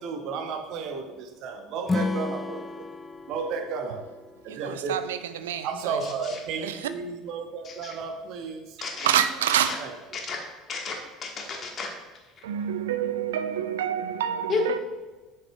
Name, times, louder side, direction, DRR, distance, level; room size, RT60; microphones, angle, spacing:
voice 1, 0.0-2.9 3.3-4.0 4.4-5.0 5.6-10.3, right 5 dB, 50° right, 0.8 m, -34 dB
Acoustic guitar / Strum, 1.9-5.1, left 3 dB, 15° left, 0.3 m, -33 dB
voice 2, 4.5-5.7 6.6-6.7 9.0-9.8 12.4-14.8, right 10 dB, 65° right, 0.4 m, -27 dB
voice 3, 8.8-9.1 9.6-9.8 10.1-10.4 10.7-11.9 14.5-14.6, left 4 dB, 35° left, 1.3 m, -31 dB
7.8 x 6.4 x 2.3 m
figure-of-eight pair, 65°, 0 cm